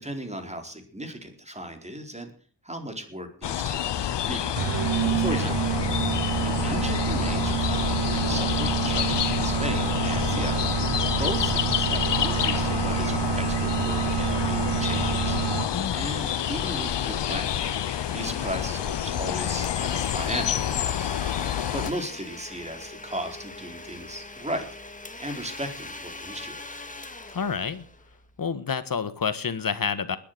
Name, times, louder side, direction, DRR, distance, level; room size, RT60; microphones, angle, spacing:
voice 1, 0.0-2.3 2.6-4.6 5.2-5.6 5.9-6.0 6.4-10.7 11.2-15.4 15.9-17.5 18.1-21.0 21.7-24.7 25.2-26.6, right 1 dB, 15° right, 5 dB, 4.3 m, -36 dB
sound 1, 3.4-21.9, left 10 dB, 90° left, 0.9 m, -28 dB
sound 2, 4.6-15.9, right 12 dB, 90° right, 0.7 m, -28 dB
voice 2, 5.1-5.5 15.7-16.1 27.3-27.8 28.4-30.2, left 6 dB, 55° left, 13 dB, 1.5 m, -29 dB
Domestic sounds home sounds, 15.8-28.4, left 2 dB, 20° left, 2.2 m, -41 dB
20.5 x 10.5 x 6.7 m, 0.41 s
wide cardioid pair, 105°, 41 cm